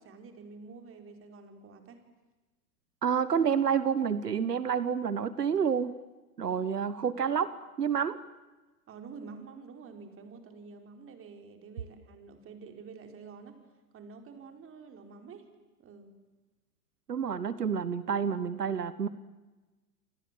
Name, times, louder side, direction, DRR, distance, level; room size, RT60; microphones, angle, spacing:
voice 1, 0.0-2.0 6.4-6.6 8.9-13.6 13.9-15.5 15.8-16.2, right 5 dB, 25° right, 5 dB, 4.9 m, -48 dB
voice 2, 3.0-5.9 6.4-7.5 7.8-8.2 17.1-19.1, right 7 dB, 85° right, 15 dB, 1.3 m, -29 dB
28.5 x 25.5 x 7.7 m, 1.2 s
hypercardioid pair, 100°, 46 cm